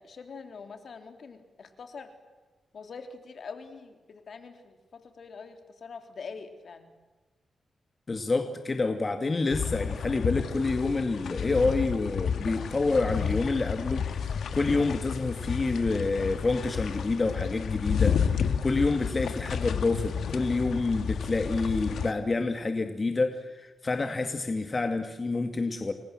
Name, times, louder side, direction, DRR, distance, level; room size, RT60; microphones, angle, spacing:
voice 1, 0.0-2.1 2.7-6.9, left 5 dB, 65° left, 7 dB, 3.4 m, -44 dB
voice 2, 8.1-25.9, left 3 dB, 35° left, 6 dB, 2.1 m, -28 dB
sound 1, 9.5-22.1, left 7 dB, 80° left, 2.0 m, -31 dB
29.5 x 23.0 x 7.7 m, 1.2 s
cardioid pair, 85°, 0 cm